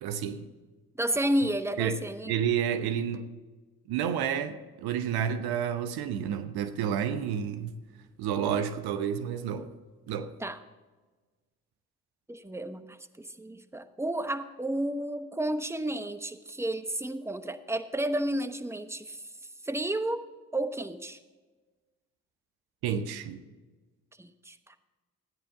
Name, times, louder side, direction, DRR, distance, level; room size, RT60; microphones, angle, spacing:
voice 1, 0.0-0.5 1.8-2.0 2.3-3.3 3.9-7.8 8.2-9.7 10.1-10.3 22.8-23.4, right 8 dB, 85° right, 0.9 m, -30 dB
voice 2, 1.0-2.4 10.4-10.6 12.3-19.2 19.6-20.2 20.5-21.2 24.2-24.8, right 1 dB, 5° right, 1.0 m, -32 dB
14.0 x 10.0 x 3.6 m
supercardioid pair, 45°, 37 cm